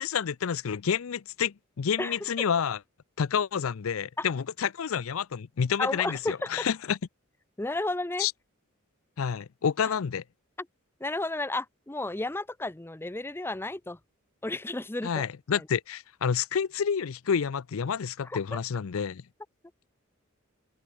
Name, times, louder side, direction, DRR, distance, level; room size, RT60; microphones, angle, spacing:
voice 1, 0.0-2.8 3.2-7.0 8.2-8.3 9.2-10.2 15.0-19.2, left 7 dB, 80° left, 0.5 m, -29 dB
voice 2, 5.8-6.7 7.6-8.3 11.0-14.0 14.4-15.1 18.2-18.6, left 2 dB, 10° left, 0.5 m, -32 dB
open air
head